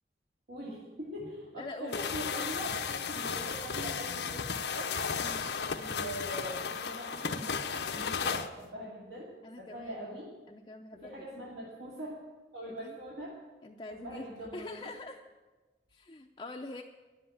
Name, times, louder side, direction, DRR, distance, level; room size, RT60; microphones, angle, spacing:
voice 1, 0.5-5.0 5.7-7.5 7.9-9.3 9.6-10.3 10.9-12.2 12.5-13.4 13.9-14.9, equal, 70° right, -6 dB, 2.6 m, -42 dB
voice 2, 1.6-2.2 5.2-5.5 9.4-10.2 10.5-11.5 12.7-13.0 13.6-14.3 14.5-15.2 15.9-16.8, left 2 dB, 25° left, 2 dB, 0.5 m, -45 dB
sound 1, 1.9-8.5, left 6 dB, 80° left, 0.7 m, -34 dB
10.5 x 7.8 x 9.9 m, 1.2 s
head